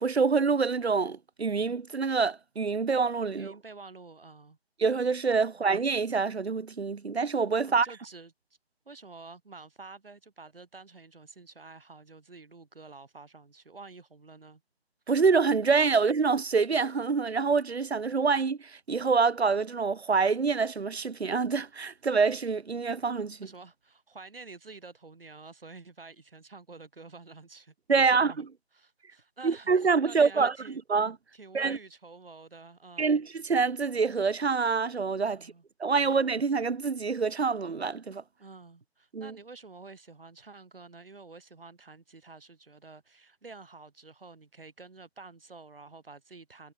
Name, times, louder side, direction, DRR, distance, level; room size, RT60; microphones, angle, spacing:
voice 1, 0.0-3.5 4.8-7.9 15.1-23.4 27.9-28.4 29.4-30.5 30.9-31.1 31.5-31.8 33.0-35.5 35.8-38.2 39.1-39.4, right 5 dB, 90° right, 0.8 m, -26 dB
voice 2, 3.3-4.6 5.5-5.7 7.6-8.3 8.9-14.6 23.4-27.7 28.1-28.4 28.7-30.8 31.3-33.2 35.3-35.6 35.9-36.2 38.4-46.7, right 3 dB, 65° right, 7.0 m, -49 dB
figure-of-eight pair, 155°, 31 cm